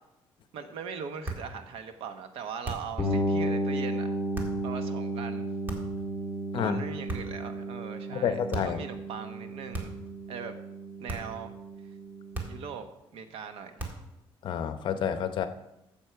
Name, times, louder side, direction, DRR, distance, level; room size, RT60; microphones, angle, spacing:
voice 1, 0.5-5.5 6.6-9.9 10.3-10.5 11.0-11.6 12.5-12.8 13.1-13.9, right 6 dB, 80° right, 8 dB, 1.2 m, -40 dB
sound 1, 1.2-1.5 2.6-3.0 4.3-4.6 5.7-6.1 7.1-7.5 8.5-8.8 9.7-10.1 11.1-11.4 12.3-12.7 13.8-14.1, right 2 dB, 20° right, 1.7 m, -37 dB
sound 2, 3.0-12.7, right 1 dB, ahead, 2.5 m, -33 dB
voice 2, 8.1-8.8 14.4-15.5, left 8 dB, 55° left, 10 dB, 0.8 m, -29 dB
13.0 x 7.3 x 4.6 m, 0.90 s
cardioid pair, 160°, 10 cm